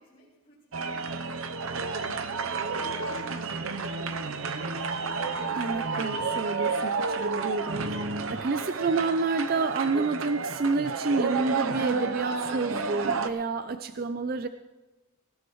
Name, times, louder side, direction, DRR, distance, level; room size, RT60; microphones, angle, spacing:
voice 1, 0.0-4.6, equal, 25° left, -9 dB, 5.0 m, -57 dB
sound 1, 0.7-13.3, right 4 dB, 70° right, 0.7 m, -31 dB
voice 2, 5.5-14.5, right 4 dB, 45° right, 10 dB, 0.4 m, -29 dB
19.5 x 15.5 x 3.1 m, 1.1 s
head